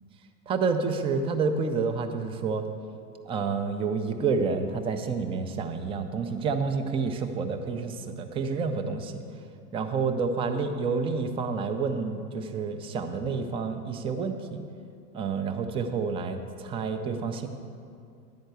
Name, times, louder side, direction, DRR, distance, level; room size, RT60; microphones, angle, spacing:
voice 1, 0.5-2.6 3.3-9.1 9.7-14.6 15.1-17.5, right 5 dB, 15° right, 7 dB, 0.3 m, -29 dB
10.5 x 4.4 x 7.9 m, 2.5 s
hypercardioid pair, 100°, 47 cm